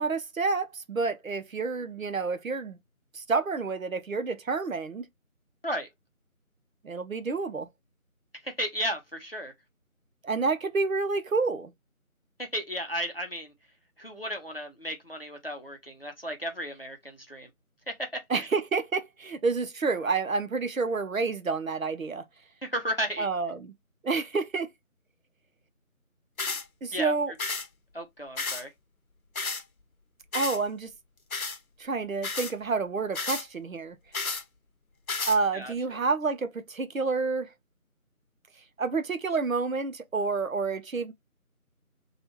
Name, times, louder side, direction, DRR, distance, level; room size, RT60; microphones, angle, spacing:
voice 1, 0.0-2.8 3.1-5.0 6.8-7.7 10.2-11.7 18.3-22.2 23.2-23.7 24.0-24.7 26.8-27.3 30.3-30.9 31.8-34.0 35.3-37.5 38.8-41.1, right 4 dB, 65° right, 0.7 m, -29 dB
voice 2, 8.4-9.5 12.4-13.5 14.0-17.5 17.9-18.5 22.6-23.3 26.9-27.1 27.9-28.7 35.5-35.7, equal, 40° left, 0.7 m, -34 dB
sound 1, 26.4-26.6 27.4-27.7 28.4-28.6 29.3-29.6 30.3-30.6 31.3-31.6 32.2-32.5 33.1-33.4 34.1-34.4 35.1-35.4, left 4 dB, 75° left, 0.8 m, -32 dB
3.2 x 2.3 x 2.9 m
figure-of-eight pair, 170°, 43 cm